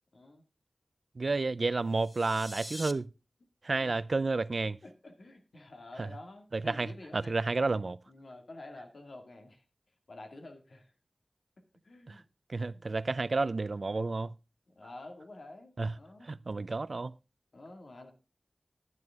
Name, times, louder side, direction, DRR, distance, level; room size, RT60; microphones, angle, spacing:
voice 1, 0.1-0.4 3.8-4.0 4.8-9.6 10.1-10.9 11.8-12.3 12.7-12.9 14.7-16.3 17.5-18.1, left 2 dB, 85° left, 2.1 m, -49 dB
voice 2, 1.2-3.1 3.6-4.8 6.5-6.9 7.1-8.0 12.1-12.2 12.5-14.3 15.8-15.9 16.3-17.1, right 3 dB, 65° right, 0.5 m, -31 dB
sound 1, 1.9-2.9, equal, 5° left, 0.7 m, -44 dB
11.0 x 11.0 x 3.6 m
wide cardioid pair, 65°, 0 cm